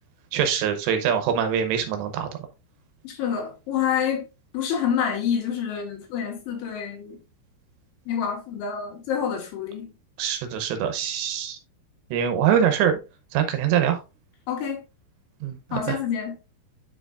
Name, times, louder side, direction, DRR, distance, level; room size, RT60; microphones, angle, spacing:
voice 1, 0.3-2.3 10.2-11.6 12.1-13.0 13.3-14.0 15.4-16.0, right 8 dB, 75° right, 2.9 m, -23 dB
voice 2, 3.0-4.2 4.5-7.2 8.1-9.9 14.5-14.8 15.7-16.3, left 8 dB, 80° left, 3.7 m, -27 dB
9.8 x 4.9 x 2.4 m
omnidirectional pair, 5.5 m